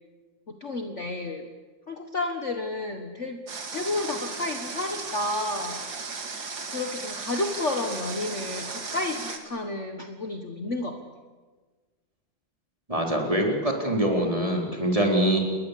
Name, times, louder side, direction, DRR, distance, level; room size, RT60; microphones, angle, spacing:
voice 1, 0.5-1.5 1.9-3.4 3.7-5.8 6.7-11.0, left 2 dB, 40° left, 4 dB, 1.7 m, -31 dB
Water, 3.5-9.4, right 4 dB, 65° right, 3.2 m, -36 dB
voice 2, 12.9-15.4, right 1 dB, 15° right, 1 dB, 4.2 m, -24 dB
28.5 x 21.5 x 8.5 m, 1.4 s
omnidirectional pair, 2.2 m